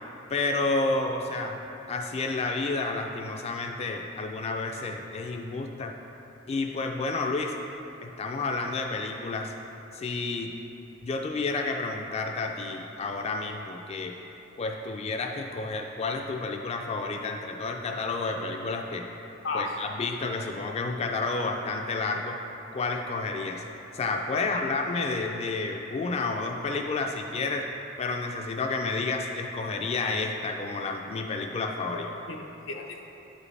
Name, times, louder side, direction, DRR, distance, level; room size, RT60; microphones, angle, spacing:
voice 1, 0.3-1.6 1.9-5.9 6.5-7.5 8.0-9.5 9.9-10.5 11.0-14.1 14.6-19.1 19.5-22.4 22.7-23.6 23.9-27.7 28.0-32.1, left 3 dB, 35° left, 3 dB, 0.3 m, -30 dB
voice 2, 19.4-19.8 24.3-24.7 31.9-33.0, left 3 dB, 85° left, 2 dB, 0.6 m, -35 dB
8.8 x 5.0 x 3.2 m, 3.0 s
head